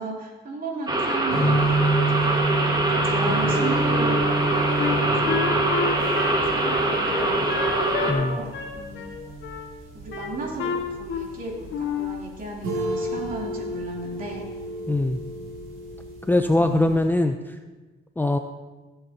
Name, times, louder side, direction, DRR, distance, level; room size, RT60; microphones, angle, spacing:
voice 1, 0.0-4.3 4.8-5.6 6.3-7.6 8.0-9.1 9.9-14.5, right 2 dB, 45° right, -2 dB, 2.9 m, -35 dB
sound 1, 0.9-8.1, right 2 dB, 20° right, 1.5 m, -23 dB
sound 2, 1.3-17.0, right 2 dB, 90° right, 2.6 m, -29 dB
Wind instrument woodwind instrument, 4.8-8.3 8.5-9.7 10.1-11.4 11.7-12.2, left 6 dB, 85° left, 1.4 m, -29 dB
voice 2, 14.9-15.2 16.3-17.4 18.2-18.4, left 2 dB, 10° left, 6 dB, 0.5 m, -21 dB
17.0 x 7.9 x 2.8 m, 1.2 s
cardioid pair, 90°, 20 cm